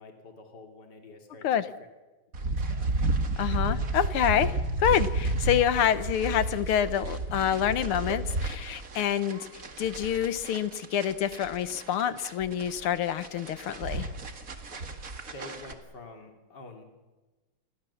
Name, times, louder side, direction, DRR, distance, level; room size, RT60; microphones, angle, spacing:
voice 1, 0.0-1.9 2.4-2.9 15.3-16.8, left 2 dB, 50° left, 3 dB, 3.5 m, -47 dB
sound 1, 2.3-15.7, right 2 dB, 40° right, 2.3 m, -32 dB
voice 2, 3.4-4.5 4.8-9.5 9.8-14.1, left 9 dB, 85° left, 13 dB, 2.0 m, -27 dB
28.5 x 23.0 x 7.2 m, 1.2 s
omnidirectional pair, 2.3 m